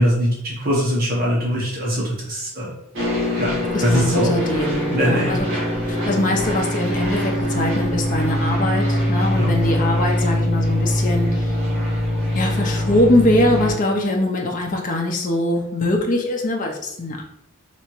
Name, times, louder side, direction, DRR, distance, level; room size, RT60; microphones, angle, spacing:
voice 1, 0.0-2.7 3.4-3.5 3.8-4.4 4.9-5.3 9.3-9.5, equal, 40° right, -4 dB, 0.9 m, -21 dB
sound 1, 2.9-13.7, left 1 dB, 60° right, 1.5 m, -22 dB
voice 2, 3.7-5.6 5.9-11.6 12.3-17.2, left 1 dB, 35° left, 0 dB, 0.5 m, -22 dB
3.3 x 2.9 x 3.0 m, 0.78 s
head